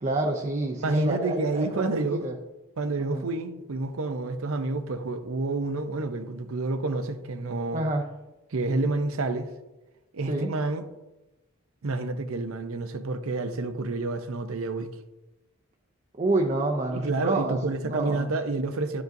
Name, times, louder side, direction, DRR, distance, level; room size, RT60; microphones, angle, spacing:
voice 1, 0.0-2.4 3.0-3.3 7.7-8.1 10.3-10.5 16.2-17.6 17.8-18.3, right 2 dB, 35° right, 0.6 m, -28 dB
voice 2, 0.8-2.2 2.8-7.8 8.5-9.5 10.1-10.8 11.8-14.9 16.9-19.0, right 3 dB, 85° right, 0.6 m, -29 dB
10.5 x 4.9 x 2.6 m
head